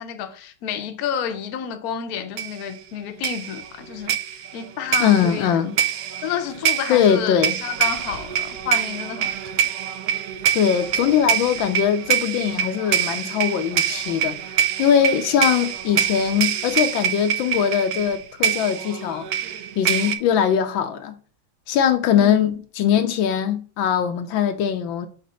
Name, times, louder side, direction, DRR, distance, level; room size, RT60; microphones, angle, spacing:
voice 1, 0.0-5.6 6.2-9.5 22.2-22.5, left 8 dB, 60° left, 1.1 m, -30 dB
sound 1, 2.4-2.7 3.2-20.2, right 10 dB, 70° right, 0.9 m, -25 dB
voice 2, 5.0-5.7 6.9-7.6 10.5-14.4 14.8-19.3 19.8-21.1 21.7-25.1, left 8 dB, 80° left, 1.4 m, -21 dB
5.2 x 3.4 x 5.6 m
omnidirectional pair, 2.1 m